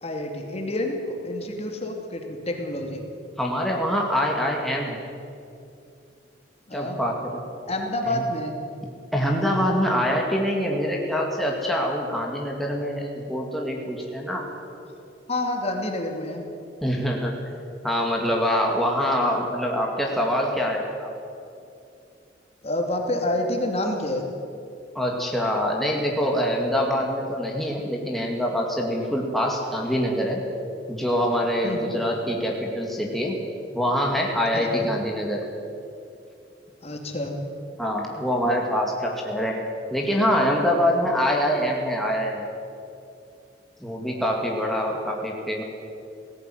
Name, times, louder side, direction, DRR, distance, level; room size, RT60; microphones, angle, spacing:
voice 1, 0.0-3.0 6.7-7.0 7.7-8.6 15.3-16.4 22.6-24.3 31.6-32.0 34.5-34.9 36.8-37.4, left 1 dB, 35° left, 2 dB, 2.6 m, -28 dB
voice 2, 3.4-5.0 6.7-7.4 8.1-8.2 9.1-14.5 16.8-17.3 17.8-21.1 24.9-30.4 30.9-33.4 33.7-35.5 37.8-39.7 39.9-42.4 43.8-45.6, equal, ahead, -1 dB, 2.2 m, -25 dB
18.5 x 16.5 x 9.3 m, 2.6 s
head